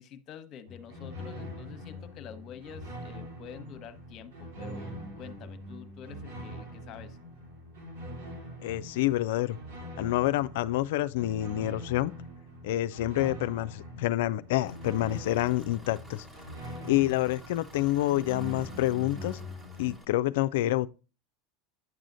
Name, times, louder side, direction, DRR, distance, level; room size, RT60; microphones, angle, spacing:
voice 1, 0.0-7.2, left 8 dB, 50° left, 0.9 m, -47 dB
sound 1, 0.7-19.9, equal, 80° right, 2.2 m, -43 dB
voice 2, 8.6-9.6 10.0-12.1 12.6-16.3 16.8-19.4 19.8-20.9, left 15 dB, 70° left, 0.3 m, -28 dB
Engine, 14.6-20.0, right 1 dB, 15° right, 1.2 m, -52 dB
9.4 x 6.1 x 2.6 m
hypercardioid pair, 90°, 0 cm